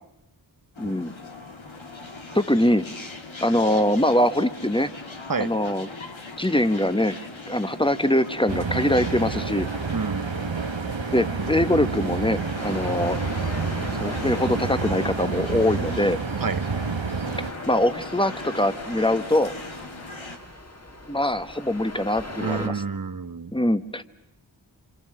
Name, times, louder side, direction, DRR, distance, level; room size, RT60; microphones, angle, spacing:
sound 1, 0.7-20.4, left 3 dB, 85° left, 2.1 m, -40 dB
voice 1, 0.8-1.1 2.3-2.9 3.4-4.9 5.4-5.9 6.4-7.2 7.5-9.7 11.1-13.2 14.0-16.2 17.7-19.5 21.1-22.8 23.5-24.0, left 1 dB, 10° left, 11 dB, 1.1 m, -23 dB
sound 2, 8.5-17.5, right 5 dB, 75° right, 1.4 m, -29 dB
voice 2, 9.9-10.4 16.4-16.6 22.4-23.5, right 4 dB, 45° right, 14 dB, 0.9 m, -29 dB
sound 3, 12.6-22.7, left 2 dB, 35° left, 2.0 m, -39 dB
27.0 x 26.5 x 7.6 m, 0.87 s
wide cardioid pair, 40°, 45 cm